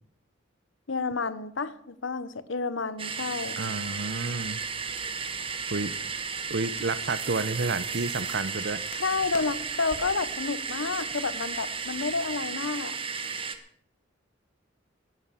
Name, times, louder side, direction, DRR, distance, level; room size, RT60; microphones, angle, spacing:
voice 1, 0.9-3.6 9.0-13.0, left 4 dB, 75° left, 16 dB, 0.8 m, -30 dB
sound 1, 3.0-13.6, right 5 dB, 30° right, 1.1 m, -34 dB
voice 2, 3.6-4.6 5.7-5.9 6.5-8.8, right 3 dB, 60° right, 16 dB, 0.8 m, -30 dB
Crackle, 4.3-12.3, left 2 dB, 40° left, 2.2 m, -52 dB
11.5 x 11.0 x 7.0 m, 0.71 s
head